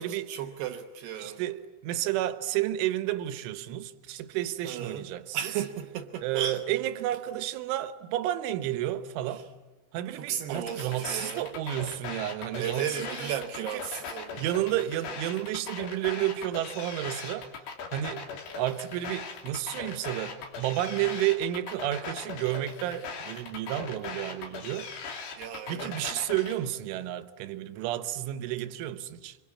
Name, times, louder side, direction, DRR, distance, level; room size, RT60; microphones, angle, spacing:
voice 1, 0.0-1.4 4.6-5.0 5.3-6.6 9.3-9.4 10.1-11.5 12.6-14.5 25.4-26.1, right 9 dB, 70° right, 2.8 m, -35 dB
voice 2, 1.2-5.4 6.2-9.5 9.9-13.3 13.6-14.0 14.4-17.5 17.9-18.3 18.5-24.9 25.7-29.4, right 13 dB, 90° right, 3.5 m, -31 dB
sound 1, 10.5-26.5, left 5 dB, 65° left, 5.1 m, -39 dB
27.0 x 25.5 x 8.6 m
omnidirectional pair, 5.4 m